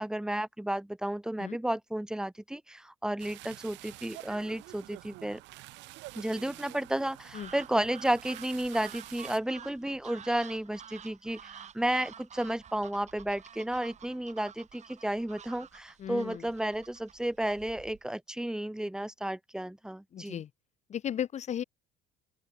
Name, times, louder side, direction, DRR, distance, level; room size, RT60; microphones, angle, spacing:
voice 1, 0.0-5.4 6.1-20.4, right 1 dB, 5° right, 2.0 m, -32 dB
sound 1, 3.2-9.4, right 20 dB, 75° right, 4.1 m, -48 dB
sound 2, 7.3-18.1, right 8 dB, 40° right, 3.4 m, -50 dB
voice 2, 16.0-16.4 20.1-20.5 20.9-21.6, left 9 dB, 40° left, 0.8 m, -35 dB
open air
cardioid pair, 115°, 19 cm